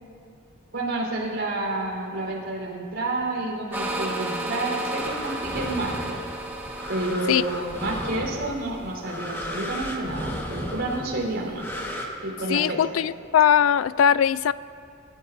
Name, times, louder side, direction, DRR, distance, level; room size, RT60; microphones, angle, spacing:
voice 1, 0.7-6.2 6.9-11.7 12.2-12.8, right 2 dB, 65° right, -2 dB, 4.1 m, -29 dB
sound 1, 3.7-9.2, right 1 dB, 10° right, 1.2 m, -33 dB
sound 2, 5.0-12.1, equal, 10° left, 1.4 m, -35 dB
voice 2, 12.5-14.5, left 8 dB, 75° left, 18 dB, 0.3 m, -20 dB
27.0 x 14.0 x 2.7 m, 2.5 s
head